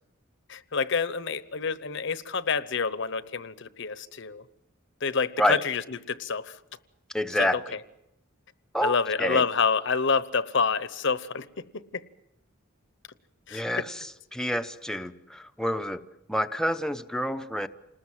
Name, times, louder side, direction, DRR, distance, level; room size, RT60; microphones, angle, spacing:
voice 1, 0.5-4.4 5.0-6.6 7.4-7.8 8.8-12.0 13.5-13.9, left 5 dB, 60° left, 1.0 m, -28 dB
voice 2, 7.1-7.6 8.7-9.4 13.5-13.8 14.3-16.0 16.3-17.7, equal, 5° left, 0.8 m, -28 dB
28.5 x 20.0 x 7.6 m
head